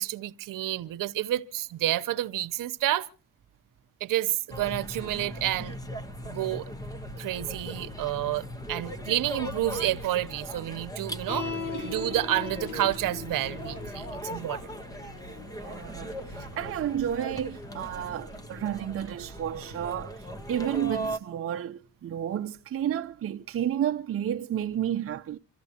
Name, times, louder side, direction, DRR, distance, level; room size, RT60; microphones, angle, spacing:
voice 1, 0.0-3.1 4.0-5.7 6.3-6.6 7.2-11.5 11.8-14.6, right 14 dB, 75° right, 0.9 m, -29 dB
sound 1, 4.5-21.2, equal, 10° left, 0.8 m, -39 dB
sound 2, 11.3-17.9, left 4 dB, 30° left, 1.1 m, -40 dB
sound 3, 12.5-18.4, left 2 dB, 55° left, 2.1 m, -48 dB
voice 2, 15.6-16.1 16.5-20.2 20.5-25.4, right 10 dB, 40° right, 0.7 m, -31 dB
26.5 x 13.5 x 2.9 m
cardioid pair, 140°, 33 cm